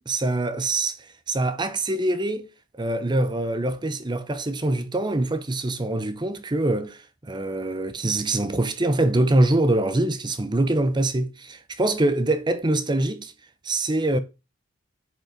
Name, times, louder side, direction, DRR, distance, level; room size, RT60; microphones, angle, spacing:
voice 1, 0.0-2.5 2.8-13.3 13.6-14.2, right 2 dB, 20° right, 0.7 m, -24 dB
8.9 x 5.4 x 3.8 m
head